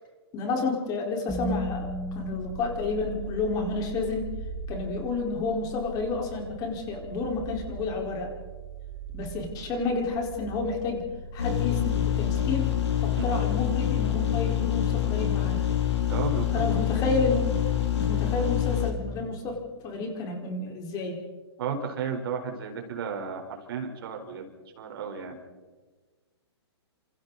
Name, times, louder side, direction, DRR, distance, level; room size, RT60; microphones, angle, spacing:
voice 1, 0.3-1.9 2.1-4.3 4.7-8.3 9.1-11.0 11.3-12.7 13.0-15.6 16.5-17.6 18.0-21.2, left 3 dB, 25° left, 1 dB, 4.7 m, -30 dB
sound 1, 1.3-13.4, right 2 dB, ahead, 2.3 m, -38 dB
sound 2, 11.4-18.9, left 11 dB, 85° left, 4.5 m, -26 dB
voice 2, 16.1-16.7 21.6-24.5 24.8-25.4, right 6 dB, 55° right, 4 dB, 4.4 m, -33 dB
29.5 x 27.0 x 4.2 m, 1.3 s
hypercardioid pair, 135°, 14 cm